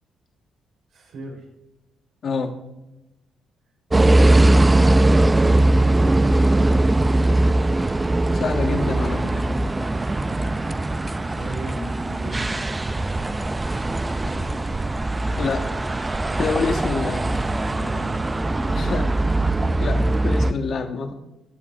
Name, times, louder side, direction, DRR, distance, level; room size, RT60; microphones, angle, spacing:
voice 1, 0.9-1.5 11.2-12.5 14.1-14.6 17.6-18.2 18.5-19.3, right 1 dB, 75° right, 0 dB, 3.7 m, -38 dB
voice 2, 2.2-2.6 8.3-9.5 14.7-14.8 15.4-15.7 16.3-17.3 18.7-19.1 19.8-21.1, left 4 dB, 55° left, 6 dB, 1.2 m, -27 dB
sound 1, 3.9-20.5, right 2 dB, 20° right, 0.4 m, -20 dB
17.5 x 8.5 x 2.5 m, 0.96 s
cardioid pair, 90°, 0 cm